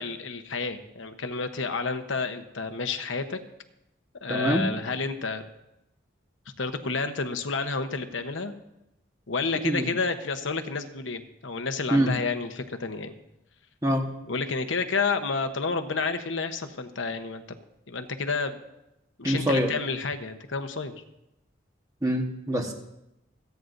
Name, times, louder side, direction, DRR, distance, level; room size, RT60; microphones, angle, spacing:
voice 1, 0.0-3.4 4.2-5.4 6.6-8.5 9.3-13.1 14.3-17.4 17.9-18.6 19.2-20.9, left 4 dB, 85° left, 8 dB, 1.0 m, -30 dB
voice 2, 4.3-4.7 9.5-9.9 11.9-12.1 13.8-14.1 19.2-19.7 22.0-22.7, equal, 20° right, 3 dB, 1.3 m, -25 dB
28.0 x 9.3 x 2.6 m, 0.88 s
head